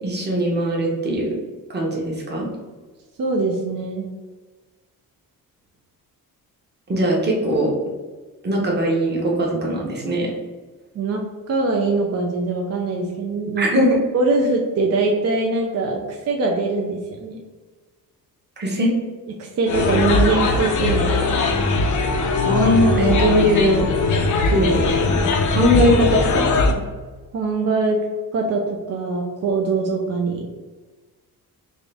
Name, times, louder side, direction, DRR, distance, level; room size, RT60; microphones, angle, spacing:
voice 1, 0.0-1.3 1.7-2.5 6.9-7.7 8.4-10.3 13.6-14.0 18.6-18.9 22.5-23.8 24.4-26.8, equal, 30° right, -2 dB, 1.0 m, -20 dB
voice 2, 3.2-4.1 10.9-11.2 11.5-13.7 14.1-17.4 19.4-21.4 27.3-28.0 28.3-30.5, right 3 dB, 45° right, 1 dB, 0.5 m, -22 dB
sound 1, 19.7-26.7, left 3 dB, 55° left, 0.6 m, -20 dB
3.6 x 2.5 x 3.3 m, 1.3 s
cardioid pair, 115°, 37 cm